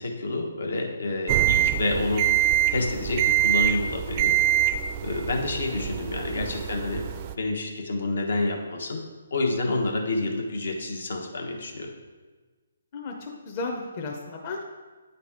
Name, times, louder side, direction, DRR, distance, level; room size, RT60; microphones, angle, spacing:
voice 1, 0.0-4.4 5.0-7.1 7.3-9.0 9.3-11.9, left 2 dB, 75° left, 2 dB, 1.2 m, -28 dB
sound 1, 1.3-7.3, right 12 dB, 35° right, 0.3 m, -24 dB
voice 2, 12.9-14.6, left 3 dB, 35° left, 0 dB, 0.7 m, -34 dB
8.8 x 4.1 x 3.6 m, 1.3 s
hypercardioid pair, 150°, 0 cm